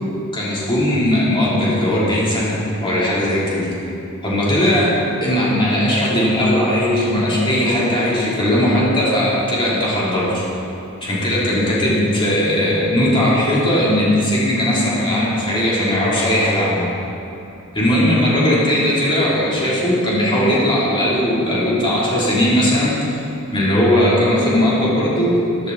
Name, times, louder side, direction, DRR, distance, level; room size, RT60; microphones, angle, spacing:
voice 1, 0.3-3.7 4.2-4.9 5.2-10.4 11.0-16.8 17.7-23.2 23.5-25.7, left 1 dB, 20° left, -8 dB, 3.3 m, -18 dB
14.0 x 11.5 x 4.1 m, 3.0 s
head